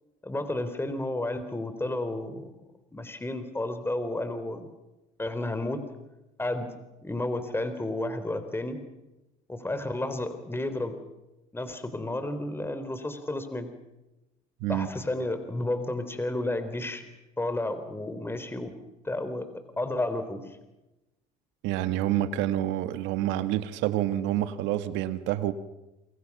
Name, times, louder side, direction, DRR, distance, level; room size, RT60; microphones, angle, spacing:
voice 1, 0.2-2.5 2.9-4.7 5.2-5.8 6.4-6.7 7.0-8.8 9.5-11.0 11.5-13.7 14.7-17.0 17.4-18.7 19.0-19.5 19.8-20.4, left 1 dB, 10° left, 9 dB, 3.5 m, -31 dB
voice 2, 21.6-25.5, right 13 dB, 80° right, 11 dB, 1.8 m, -28 dB
28.0 x 26.0 x 6.1 m, 0.98 s
supercardioid pair, 85°, 19 cm